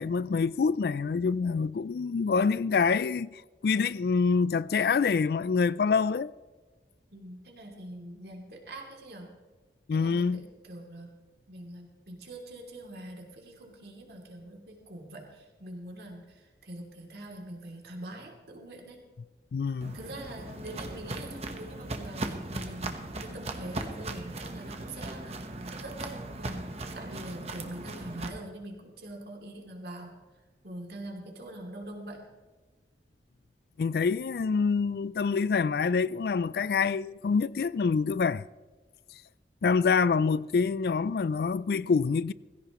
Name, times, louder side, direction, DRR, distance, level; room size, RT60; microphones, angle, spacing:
voice 1, 0.0-6.3 9.9-10.4 19.5-20.0 33.8-38.5 39.6-42.3, left 5 dB, 60° left, 0.3 m, -26 dB
voice 2, 7.1-9.3 9.9-11.1 11.5-19.0 19.9-30.2 30.6-32.2, right 1 dB, 65° right, 2.9 m, -44 dB
Walk footsteps, 19.8-28.3, right 2 dB, 35° right, 1.1 m, -38 dB
17.5 x 16.0 x 3.1 m
head